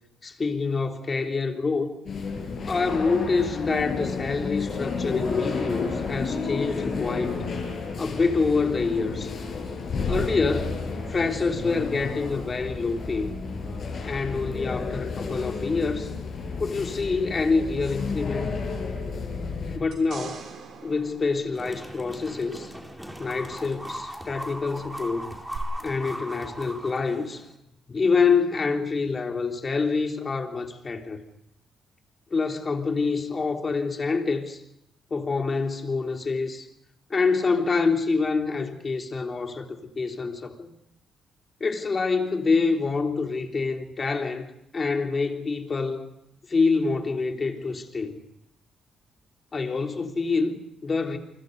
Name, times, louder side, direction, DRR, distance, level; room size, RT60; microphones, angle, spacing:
voice 1, 0.2-1.9 2.6-7.4 8.0-9.3 10.1-10.8 11.1-13.3 14.0-16.1 16.6-18.5 19.7-20.4 20.8-22.7 23.2-25.3 25.8-27.4 27.9-31.2 32.3-34.6 35.1-36.7 37.1-40.7 41.6-46.1 46.5-48.2 49.5-51.2, left 4 dB, 35° left, 3.6 m, -26 dB
sound 1, 2.1-19.8, left 4 dB, 50° left, 7.8 m, -31 dB
sound 2, 19.9-22.4 25.5-25.6, right 6 dB, 70° right, 6.5 m, -43 dB
academia box pulando corda, 21.5-27.6, equal, 5° right, 4.3 m, -38 dB
29.5 x 24.5 x 5.5 m
cardioid pair, 90°, 0 cm